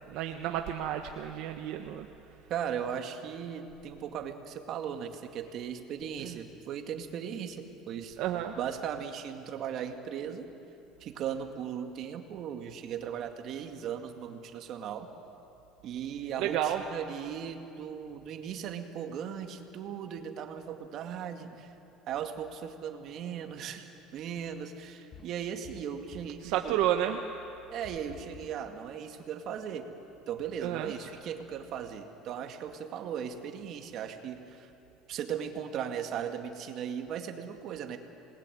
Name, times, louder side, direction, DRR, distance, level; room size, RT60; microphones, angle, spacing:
voice 1, 0.1-2.1 6.2-6.4 8.2-8.6 16.4-16.8 26.4-27.2 30.6-30.9, right 12 dB, 70° right, 4 dB, 1.3 m, -31 dB
voice 2, 2.5-8.2 8.6-10.5 11.0-15.1 15.8-21.7 22.1-26.8 27.7-29.9 30.3-34.7 35.1-38.0, right 8 dB, 50° right, 5 dB, 2.2 m, -37 dB
sound 1, 25.1-26.5 27.8-28.7, left 8 dB, 40° left, 1.3 m, -51 dB
27.0 x 20.5 x 9.4 m, 2.8 s
cardioid pair, 140°, 0 cm